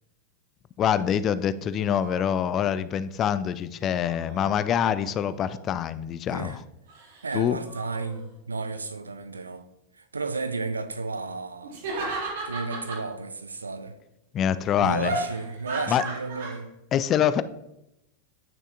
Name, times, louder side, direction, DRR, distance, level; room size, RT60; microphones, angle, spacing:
voice 1, 0.8-6.6 7.3-7.6 14.3-15.1 15.9-16.0 16.9-17.4, left 9 dB, 30° left, 0.3 m, -25 dB
sound 1, 1.8-2.6 3.9-5.5 6.9-7.3 7.6-8.3 11.6-13.1 15.0-16.6, right 2 dB, 55° right, 1.5 m, -36 dB
voice 2, 7.2-9.7 9.9-14.0 14.8-16.7, right 4 dB, 75° right, 0.5 m, -33 dB
8.8 x 6.3 x 2.5 m
figure-of-eight pair, 90°, 0 cm